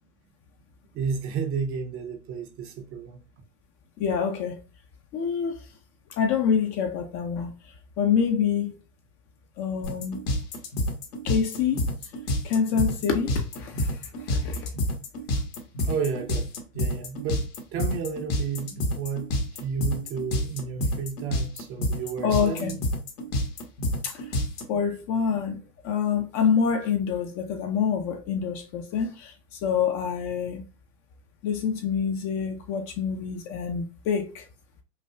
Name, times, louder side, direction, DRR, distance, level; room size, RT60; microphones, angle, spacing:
voice 1, 0.9-3.2 15.8-22.8, right 6 dB, 25° right, 0.6 m, -32 dB
voice 2, 4.0-4.6 5.1-5.6 6.1-7.5 8.0-8.8 9.6-10.2 11.2-11.8 12.4-13.9 14.3-14.7 22.2-22.7 24.0-24.3 24.7-30.6 31.4-34.4, left 7 dB, 30° left, 0.6 m, -26 dB
sound 1, 9.8-24.6, left 1 dB, 65° left, 1.4 m, -28 dB
5.6 x 2.3 x 2.3 m
hypercardioid pair, 110°, 49 cm